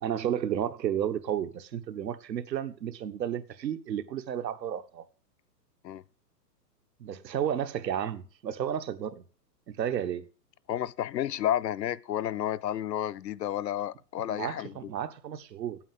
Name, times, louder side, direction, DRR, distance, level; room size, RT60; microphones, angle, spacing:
voice 1, 0.0-5.0 7.0-9.2 9.7-10.3 14.3-15.8, right 9 dB, 80° right, 1.4 m, -32 dB
voice 2, 10.7-14.9, left 11 dB, 80° left, 0.8 m, -31 dB
8.9 x 8.4 x 7.6 m
hypercardioid pair, 170°, 49 cm